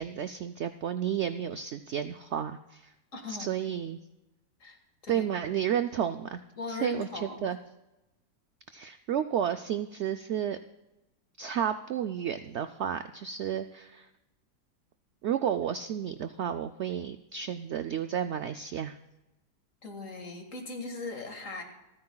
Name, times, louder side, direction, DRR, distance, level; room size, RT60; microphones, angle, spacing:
voice 1, 0.0-2.9 3.3-4.0 5.1-6.4 6.7-7.6 8.7-10.6 11.4-14.1 15.2-19.0, right 9 dB, 80° right, 9 dB, 0.6 m, -32 dB
voice 2, 3.1-3.5 4.6-5.3 6.6-7.5 19.8-21.6, left 3 dB, 50° left, 3 dB, 2.2 m, -39 dB
28.0 x 9.5 x 2.3 m, 0.98 s
omnidirectional pair, 1.7 m